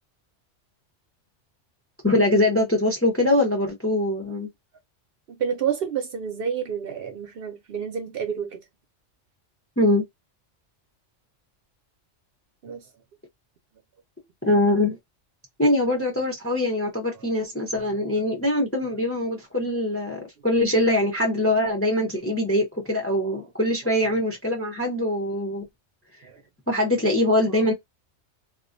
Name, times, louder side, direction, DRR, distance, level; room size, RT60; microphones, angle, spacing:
voice 1, 2.0-4.5 9.8-10.0 14.4-15.0 15.6-25.7 26.7-27.7, left 1 dB, 20° left, 0.4 m, -23 dB
voice 2, 5.3-8.6 12.6-12.9 17.1-17.3 17.8-18.2 21.6-21.7 23.2-23.5 26.2-26.4 27.5-27.6, right 7 dB, 60° right, 0.7 m, -30 dB
2.3 x 2.1 x 2.5 m
omnidirectional pair, 1.2 m